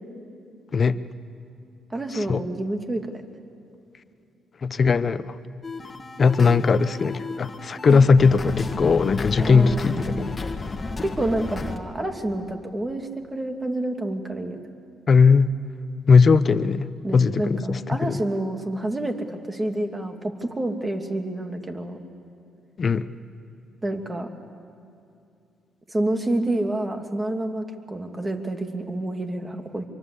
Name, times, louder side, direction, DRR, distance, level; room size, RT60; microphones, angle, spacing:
voice 1, 1.9-3.1 7.9-8.1 9.4-10.3 11.0-14.6 17.0-22.0 23.8-24.3 25.9-29.9, right 1 dB, 20° right, 5 dB, 2.5 m, -28 dB
voice 2, 4.6-5.4 6.2-10.3 15.1-15.5 16.1-18.2 22.8-23.1, left 5 dB, 45° left, 13 dB, 0.9 m, -19 dB
sound 1, 5.6-11.8, left 3 dB, 25° left, 1.9 m, -33 dB
24.5 x 23.5 x 8.5 m, 2.7 s
cardioid pair, 90°, 0 cm